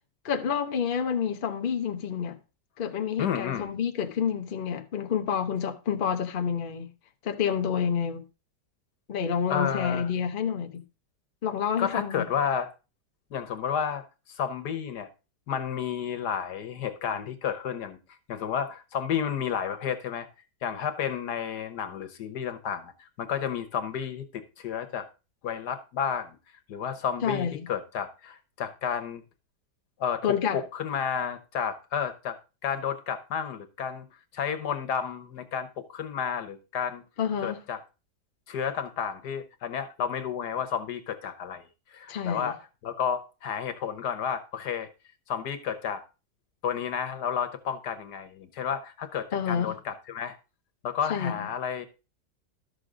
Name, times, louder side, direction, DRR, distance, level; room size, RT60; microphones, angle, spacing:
voice 1, 0.2-2.4 2.8-6.9 7.2-8.2 9.1-10.8 11.4-12.2 27.2-27.7 30.2-30.6 37.2-37.6 42.1-42.5 49.3-49.8 51.1-51.5, left 7 dB, 40° left, 0.8 m, -28 dB
voice 2, 3.2-3.7 9.5-10.1 11.8-12.7 13.3-15.1 15.5-20.3 20.6-25.1 25.4-26.3 26.7-29.2 30.0-34.0 34.3-37.0 37.4-37.8 38.5-41.7 41.9-42.6 42.8-44.9 45.3-46.0 46.6-50.4 50.8-51.9, left 8 dB, 70° left, 1.6 m, -31 dB
12.0 x 6.7 x 3.7 m
omnidirectional pair, 1.9 m